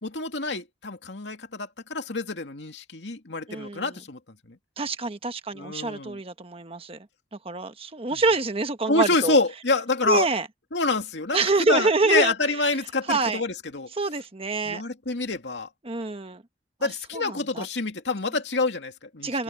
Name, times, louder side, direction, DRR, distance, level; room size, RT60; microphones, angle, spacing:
voice 1, 0.0-4.2 4.5-4.6 5.5-6.2 8.9-10.3 10.7-13.9 14.6-15.7 16.8-19.3, left 3 dB, 85° left, 2.4 m, -27 dB
voice 2, 3.5-4.0 4.8-9.4 10.0-10.5 11.3-12.6 13.1-13.4 14.0-14.8 15.8-16.4 16.8-17.7 19.2-19.4, right 3 dB, 35° right, 1.3 m, -26 dB
open air
head